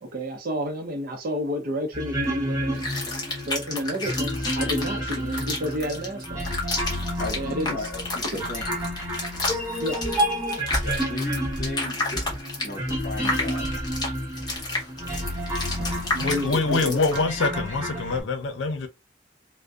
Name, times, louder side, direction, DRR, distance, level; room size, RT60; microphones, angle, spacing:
voice 1, 0.0-2.9 3.5-6.5 7.3-7.9 8.2-8.4 9.8-10.0 16.1-17.0, equal, 55° right, 0.6 m, -30 dB
sound 1, 1.9-18.2, equal, 15° right, 1.2 m, -30 dB
sound 2, 2.7-17.2, left 3 dB, 25° left, 0.9 m, -31 dB
voice 2, 7.2-8.6 10.8-12.2 12.6-13.7, left 2 dB, 45° left, 1.0 m, -35 dB
sound 3, 7.2-7.5 7.9-8.2 8.6-9.0 9.3-10.4 10.7-11.2 11.4-11.7 12.1-13.2 13.6-14.8 15.1-15.4 15.8-16.1, equal, 5° left, 1.2 m, -37 dB
voice 3, 16.2-18.9, left 3 dB, 85° left, 0.5 m, -25 dB
2.5 x 2.1 x 2.3 m
head